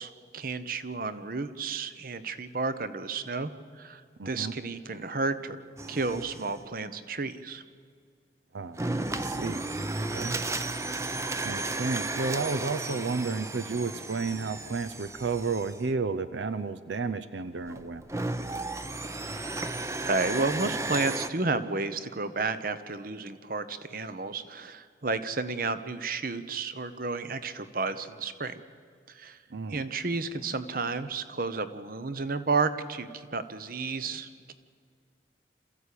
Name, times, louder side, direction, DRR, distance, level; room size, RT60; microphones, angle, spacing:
voice 1, 0.0-3.5 3.8-5.6 5.9-7.6 20.0-28.6 29.1-29.4 29.7-34.5, right 3 dB, 50° right, 12 dB, 1.0 m, -32 dB
voice 2, 4.2-4.5 8.5-8.8 9.1-9.6 10.1-10.4 11.4-18.1 29.5-29.8, right 4 dB, 80° right, 11 dB, 0.7 m, -32 dB
sound 1, 5.8-6.6 8.8-15.8 17.7-21.3, right 2 dB, 15° right, 0.7 m, -34 dB
27.5 x 14.5 x 8.5 m, 2.1 s
head